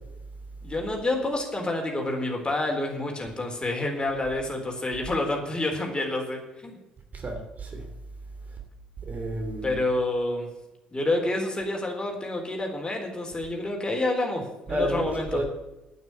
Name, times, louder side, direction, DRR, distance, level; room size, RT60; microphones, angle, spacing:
voice 1, 0.6-6.8 9.6-10.5 10.9-15.4, left 2 dB, 20° left, 2 dB, 4.0 m, -28 dB
voice 2, 7.1-7.9 9.0-9.8 14.7-15.4, right 1 dB, 35° right, 3 dB, 3.0 m, -31 dB
9.3 x 9.0 x 9.1 m, 1.0 s
hypercardioid pair, 50°, 4 cm